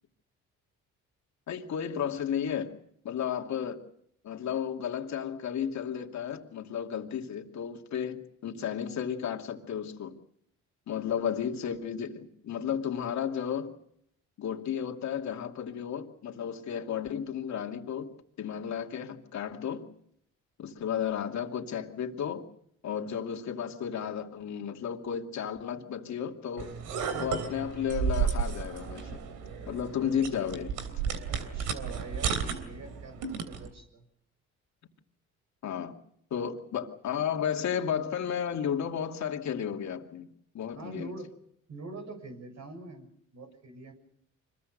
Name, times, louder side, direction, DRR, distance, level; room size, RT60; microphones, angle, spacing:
voice 1, 1.5-2.8 3.0-3.8 4.2-10.2 10.9-13.7 14.4-19.9 20.6-22.5 22.8-26.8 27.2-29.2 29.7-30.7 35.6-36.0 36.3-40.3 40.5-41.1, left 8 dB, 65° left, 2.6 m, -33 dB
sound 1, 26.6-33.7, right 7 dB, 90° right, 3.3 m, -33 dB
voice 2, 31.3-34.1 40.7-41.4 41.7-43.9, right 2 dB, 65° right, 6.9 m, -44 dB
25.5 x 22.0 x 6.6 m
cardioid pair, 90°, 30 cm